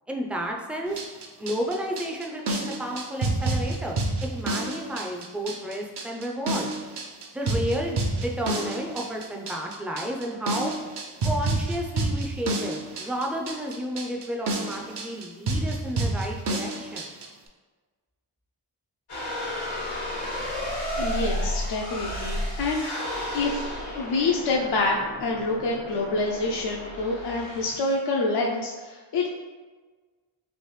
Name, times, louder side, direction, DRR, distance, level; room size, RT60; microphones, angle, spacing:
voice 1, 0.1-1.0 1.4-6.7 7.3-10.7 11.2-17.1, equal, 5° right, 0 dB, 0.4 m, -32 dB
sound 1, 0.9-17.3, right 2 dB, 55° right, 0.6 m, -29 dB
sound 2, 19.1-28.0, equal, 90° left, 1.1 m, -32 dB
voice 2, 20.9-23.6 24.0-29.3, left 3 dB, 55° left, -1 dB, 0.5 m, -27 dB
3.2 x 2.5 x 3.1 m, 1.4 s
cardioid pair, 55°, 49 cm